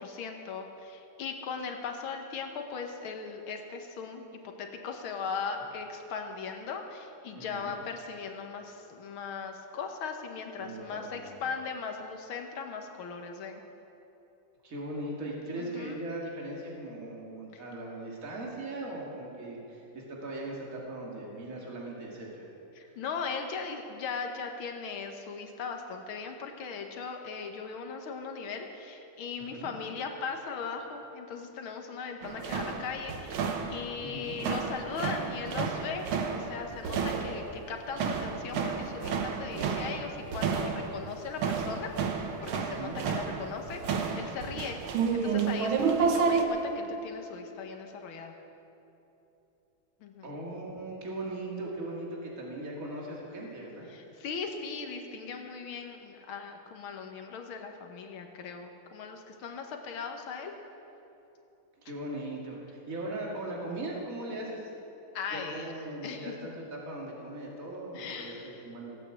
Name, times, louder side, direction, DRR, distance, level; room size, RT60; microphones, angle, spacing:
voice 1, 0.0-13.6 15.6-16.0 17.5-17.6 22.7-48.4 50.0-50.3 53.9-60.5 65.1-65.7 66.0-66.3 67.9-68.6, left 5 dB, 80° left, 4 dB, 1.9 m, -38 dB
voice 2, 7.3-7.7 10.6-11.4 14.6-22.5 22.8-23.0 29.4-29.7 34.0-34.4 42.7-43.0 50.2-54.1 61.8-64.7 65.3-69.0, right 2 dB, 40° right, -2 dB, 2.5 m, -39 dB
sound 1, 32.2-46.4, right 5 dB, 80° right, 1.8 m, -31 dB
16.5 x 8.6 x 7.8 m, 2.9 s
omnidirectional pair, 2.2 m